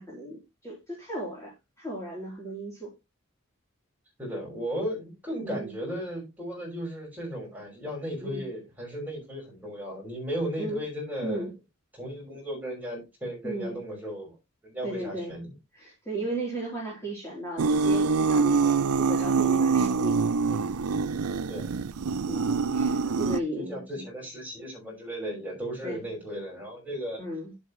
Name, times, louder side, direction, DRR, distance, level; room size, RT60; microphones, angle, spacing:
voice 1, 0.0-1.5 1.8-2.9 5.4-5.7 8.2-8.4 10.6-10.8 11.2-11.5 13.4-13.8 14.8-15.3 15.7-20.7 22.3-24.0 25.8-26.0 27.2-27.5, right 1 dB, 15° left, -5 dB, 3.9 m, -35 dB
voice 2, 4.2-11.4 12.0-14.3 14.6-15.5 21.4-21.8 23.0-23.4 23.7-27.2, equal, 5° right, -2 dB, 5.7 m, -35 dB
sound 1, 17.6-23.4, right 4 dB, 85° right, 0.5 m, -25 dB
11.0 x 8.0 x 3.2 m, 0.23 s
head